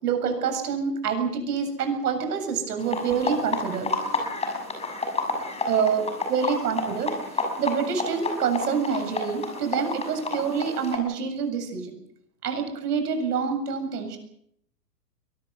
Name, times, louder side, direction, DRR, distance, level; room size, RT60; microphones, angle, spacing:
voice 1, 0.0-4.3 5.7-6.0 6.3-11.9 12.4-14.2, right 6 dB, 65° right, 6 dB, 7.7 m, -27 dB
sound 1, 2.8-11.0, left 3 dB, 10° left, 6.3 m, -30 dB
23.0 x 20.0 x 8.3 m, 0.72 s
hypercardioid pair, 125°, 50 cm